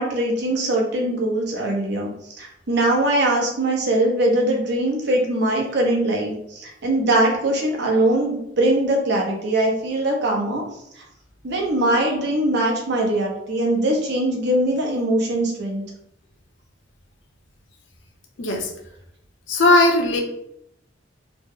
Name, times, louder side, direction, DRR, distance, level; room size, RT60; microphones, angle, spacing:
voice 1, 0.0-2.1 2.4-10.6 11.4-15.8, right 1 dB, 60° right, 0 dB, 0.7 m, -21 dB
voice 2, 18.4-18.7 19.5-20.2, left 2 dB, 65° left, 1 dB, 0.7 m, -17 dB
2.9 x 2.1 x 3.5 m, 0.77 s
head